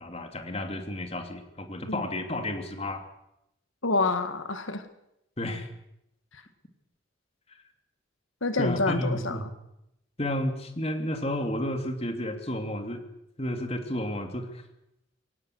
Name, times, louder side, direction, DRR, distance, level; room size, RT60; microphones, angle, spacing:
voice 1, 0.0-3.0 5.4-5.7 8.6-9.4 10.2-13.0 13.4-14.5, left 1 dB, 30° left, 6 dB, 3.0 m, -31 dB
voice 2, 3.8-4.9 6.3-6.4 8.4-9.4, left 3 dB, 90° left, 10 dB, 1.9 m, -27 dB
24.0 x 18.5 x 8.0 m, 0.83 s
head